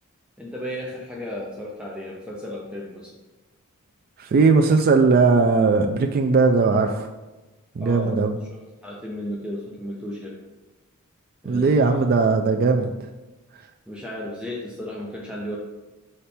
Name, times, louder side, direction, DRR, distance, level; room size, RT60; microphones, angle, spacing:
voice 1, 0.4-3.1 7.8-8.2 8.5-10.4 11.4-12.0 13.9-15.6, left 1 dB, 5° right, -4 dB, 0.7 m, -34 dB
voice 2, 4.2-7.1 7.8-8.4 11.4-12.9, right 4 dB, 45° right, 4 dB, 0.3 m, -18 dB
6.7 x 4.2 x 3.4 m, 1.1 s
head